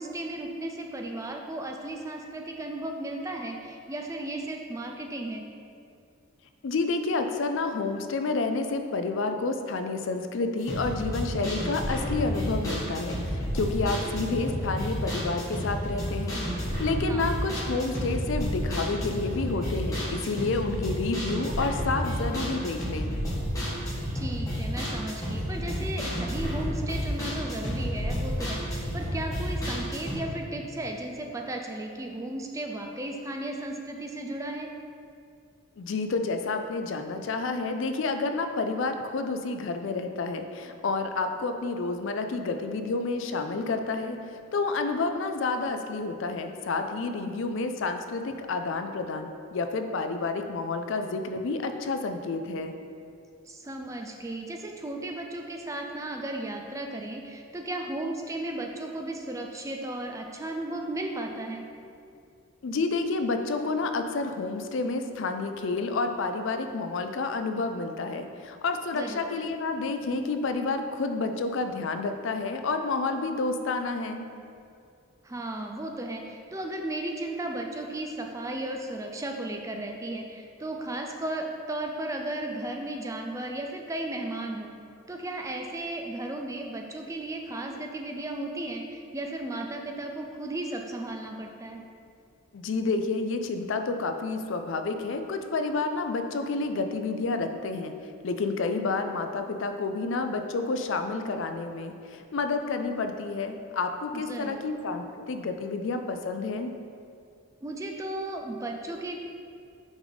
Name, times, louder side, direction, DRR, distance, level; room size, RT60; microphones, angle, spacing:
voice 1, 0.0-5.4 17.1-17.4 24.1-34.7 53.5-61.7 68.9-69.2 75.2-84.7 85.1-91.8 104.1-104.7 107.6-109.2, right 1 dB, 15° right, 2 dB, 0.4 m, -35 dB
voice 2, 6.6-23.1 35.8-52.7 62.6-74.3 92.5-97.9 98.2-106.7, left 3 dB, 60° left, 7 dB, 0.4 m, -29 dB
sound 1, 10.6-30.1, equal, 15° left, 1.5 m, -31 dB
6.1 x 5.0 x 4.0 m, 2.4 s
head